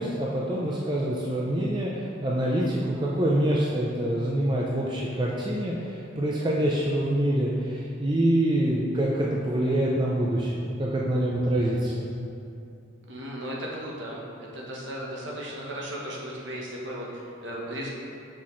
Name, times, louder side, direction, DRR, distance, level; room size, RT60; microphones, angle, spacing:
voice 1, 0.0-12.1, right 1 dB, 20° right, -4 dB, 0.4 m, -26 dB
voice 2, 13.1-17.9, equal, 60° right, -3 dB, 1.1 m, -36 dB
6.2 x 5.7 x 3.1 m, 2.6 s
head